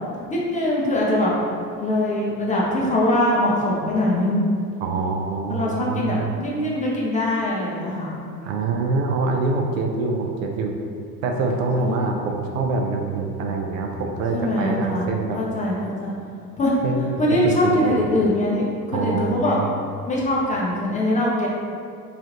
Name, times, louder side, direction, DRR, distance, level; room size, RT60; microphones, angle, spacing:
voice 1, 0.3-1.3 1.8-4.5 5.5-8.1 11.8-11.9 14.3-15.1 15.3-16.1 16.6-16.7 17.2-19.6 20.1-21.5, left 1 dB, 15° left, -5 dB, 0.6 m, -22 dB
voice 2, 4.8-6.4 8.2-10.8 11.2-15.4 16.8-18.0 18.9-19.6, right 3 dB, 55° right, 1 dB, 0.5 m, -25 dB
3.2 x 2.4 x 3.8 m, 2.4 s
figure-of-eight pair, 75°, 48 cm